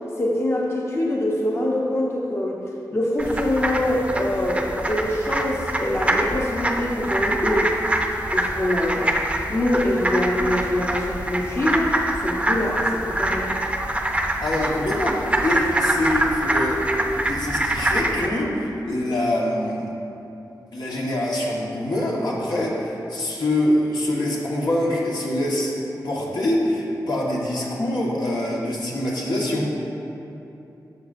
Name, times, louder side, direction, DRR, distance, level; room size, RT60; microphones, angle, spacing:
voice 1, 0.2-2.6 2.9-7.7 8.3-9.1 9.5-13.5, left 1 dB, 35° left, -3 dB, 0.9 m, -24 dB
sound 1, 3.2-18.3, right 1 dB, 15° right, 0.6 m, -25 dB
voice 2, 14.4-16.8 17.2-19.9 20.7-25.7 26.0-29.7, left 1 dB, 75° left, -5 dB, 1.5 m, -24 dB
11.5 x 6.3 x 2.6 m, 2.8 s
wide cardioid pair, 75°, 7 cm